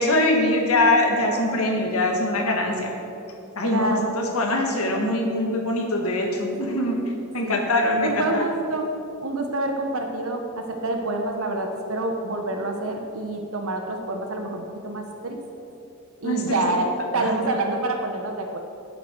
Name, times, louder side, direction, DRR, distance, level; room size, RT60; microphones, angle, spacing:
voice 1, 0.0-2.9 3.5-7.0 7.3-8.4 16.2-16.6 17.1-17.3, left 1 dB, 85° left, 1 dB, 1.7 m, -23 dB
voice 2, 3.6-4.1 7.4-7.6 8.0-8.9 9.2-15.4 16.2-18.6, right 2 dB, 70° right, 4 dB, 1.0 m, -27 dB
11.0 x 8.5 x 4.5 m, 2.7 s
head